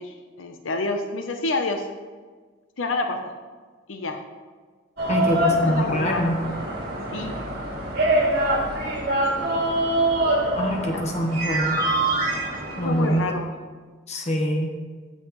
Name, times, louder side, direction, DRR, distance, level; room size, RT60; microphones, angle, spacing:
voice 1, 0.0-1.9 2.8-3.3 3.9-4.2 5.1-6.4 7.1-7.4 12.7-13.5, left 3 dB, 90° left, 5 dB, 0.7 m, -29 dB
sound 1, 5.0-13.3, right 1 dB, 55° right, 2.0 m, -24 dB
voice 2, 5.1-6.4 10.6-11.8 12.8-13.2 14.1-14.7, equal, 35° left, 2 dB, 1.2 m, -24 dB
15.0 x 5.6 x 3.1 m, 1.5 s
head